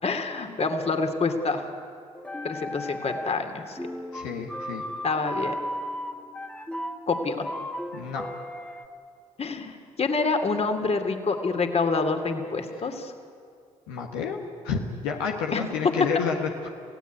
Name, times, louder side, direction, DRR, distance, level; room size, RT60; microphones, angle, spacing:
voice 1, 0.0-1.7 2.4-3.8 5.0-5.5 7.1-7.5 9.4-13.1 15.5-15.6, left 4 dB, 40° left, 6 dB, 2.8 m, -27 dB
sound 1, 2.2-3.5 3.8-8.9, equal, 5° left, 1.8 m, -35 dB
voice 2, 4.1-4.8 7.9-8.3 13.9-14.4 14.6-16.7, left 6 dB, 80° left, 2 dB, 1.6 m, -30 dB
26.0 x 16.5 x 9.4 m, 2.3 s
hypercardioid pair, 50°, 16 cm